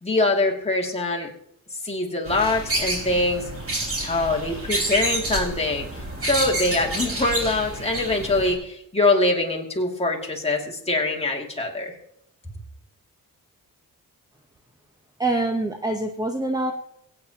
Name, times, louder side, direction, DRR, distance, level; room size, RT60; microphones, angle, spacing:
voice 1, 0.0-1.3 1.8-3.4 4.0-11.9, left 2 dB, 15° left, -1 dB, 2.3 m, -23 dB
sound 1, 2.3-8.5, right 1 dB, 40° right, 3.6 m, -29 dB
voice 2, 15.2-16.7, right 2 dB, 10° right, 3 dB, 0.8 m, -25 dB
23.0 x 8.9 x 2.9 m, 0.75 s
wide cardioid pair, 130°, 34 cm